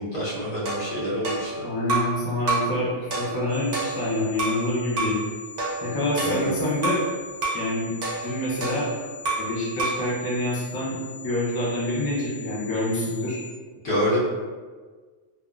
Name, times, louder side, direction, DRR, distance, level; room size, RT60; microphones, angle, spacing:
voice 1, 0.0-1.6 6.2-6.6 13.8-14.2, equal, 65° left, -9 dB, 1.3 m, -27 dB
sound 1, 0.6-2.2 2.5-2.8 3.1-4.6 5.0-5.2 5.6-7.1 7.4-7.7 8.0-9.5 9.8-10.1, right 3 dB, 45° right, 0.7 m, -29 dB
voice 2, 1.6-5.2 5.8-7.0 7.5-7.9 8.2-8.9 9.4-11.0 11.2-13.4, left 1 dB, 25° left, -7 dB, 0.5 m, -26 dB
sound 2, 3.5-13.5, left 6 dB, 75° right, 1.3 m, -42 dB
3.5 x 2.0 x 2.4 m, 1.5 s
omnidirectional pair, 1.2 m